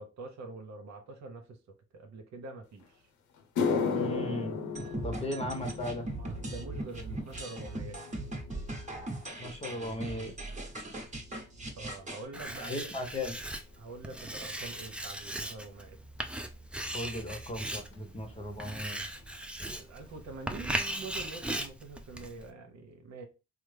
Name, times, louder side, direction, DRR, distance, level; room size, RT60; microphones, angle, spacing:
voice 1, 0.0-1.6 1.9-3.0 5.0-5.2 6.2-8.1 11.8-12.9 13.8-16.0 19.8-23.3, right 3 dB, 65° right, 0.9 m, -45 dB
sound 1, 2.8-2.9 3.4-11.9 12.2-12.6 13.3-13.4 16.2-16.3 17.9-18.0 18.2-18.5 18.7-19.3 19.7-19.8 20.3-20.4, left 5 dB, 75° left, 0.7 m, -37 dB
voice 2, 3.9-4.6 5.0-6.1 9.4-10.3 12.6-13.4 16.9-19.0, left 1 dB, 20° left, 0.9 m, -37 dB
sound 2, 4.8-12.3, right 2 dB, 25° right, 1.1 m, -39 dB
Writing, 12.3-22.5, right 1 dB, 5° right, 0.4 m, -38 dB
3.3 x 2.0 x 3.2 m
cardioid pair, 90°, 30 cm